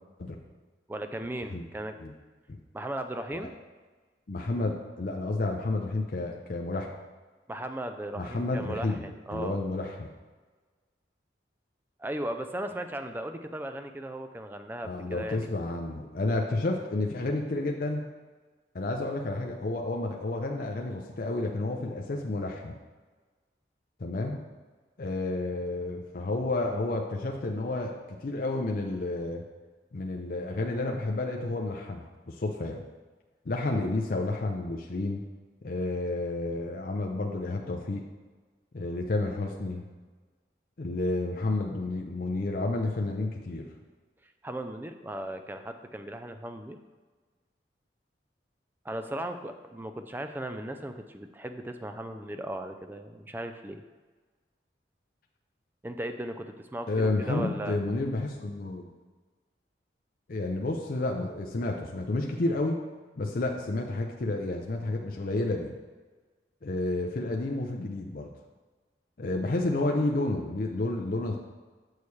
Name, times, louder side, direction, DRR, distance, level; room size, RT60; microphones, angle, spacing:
voice 1, 0.9-2.0 2.7-3.5 7.5-9.6 12.0-15.5 44.2-46.8 48.8-53.8 55.8-57.8, right 1 dB, 10° right, 7 dB, 0.4 m, -37 dB
voice 2, 4.3-6.9 8.2-9.0 9.3-10.1 14.8-18.0 18.7-22.8 24.0-24.4 25.0-29.4 29.9-32.8 33.5-35.2 35.6-38.0 38.7-39.8 40.8-43.7 56.9-58.9 60.3-62.8 63.2-65.7 66.6-68.3 69.2-71.4, left 2 dB, 50° left, 1 dB, 0.5 m, -30 dB
6.9 x 6.4 x 3.2 m, 1.4 s
head